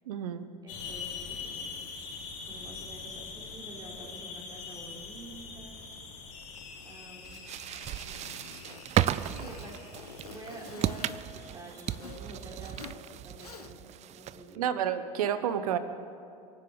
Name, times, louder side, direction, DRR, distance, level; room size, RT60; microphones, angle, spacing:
voice 1, 0.1-0.5 14.6-15.8, right 9 dB, 75° right, 12 dB, 1.1 m, -30 dB
voice 2, 0.6-1.7 2.4-6.2 6.8-7.5 9.2-9.8 10.2-14.7, right 2 dB, 20° right, -2 dB, 4.5 m, -48 dB
sound 1, 0.7-12.7, left 5 dB, 60° left, 3.3 m, -44 dB
Zipper (clothing), 5.7-12.2 12.6-13.0 13.3-14.0, left 6 dB, 90° left, 0.9 m, -50 dB
sound 2, 7.2-14.6, right 12 dB, 35° right, 0.5 m, -34 dB
24.0 x 8.4 x 7.1 m, 2.4 s
hypercardioid pair, 75°, 19 cm